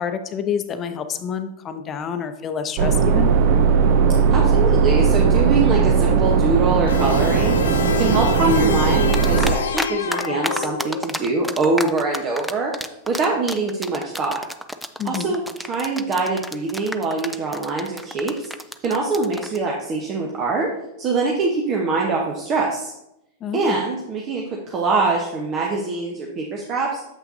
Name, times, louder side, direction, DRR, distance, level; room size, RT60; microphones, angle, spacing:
voice 1, 0.0-3.3 15.0-15.4 23.4-23.8, left 7 dB, 30° left, 8 dB, 0.7 m, -28 dB
sound 1, 2.8-9.5, right 6 dB, 55° right, 0.6 m, -18 dB
voice 2, 4.3-14.4 15.0-18.5 18.8-20.7 21.0-22.9 23.5-27.0, right 3 dB, 35° right, -1 dB, 1.0 m, -24 dB
sound 2, 6.9-11.2, left 7 dB, 80° left, 0.5 m, -27 dB
sound 3, 9.1-9.9 10.1-19.6, equal, ahead, 0.4 m, -29 dB
7.6 x 5.7 x 2.7 m, 0.85 s
hypercardioid pair, 110°, 0 cm